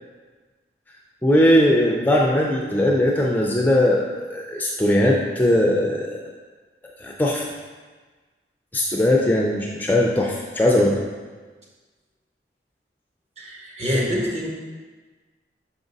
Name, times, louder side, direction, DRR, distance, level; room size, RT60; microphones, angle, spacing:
voice 1, 1.2-6.2 7.0-7.5 8.7-11.0, left 1 dB, 10° left, -2 dB, 0.4 m, -19 dB
voice 2, 13.4-14.5, equal, 40° right, -3 dB, 1.2 m, -25 dB
5.7 x 5.0 x 4.0 m, 1.4 s
head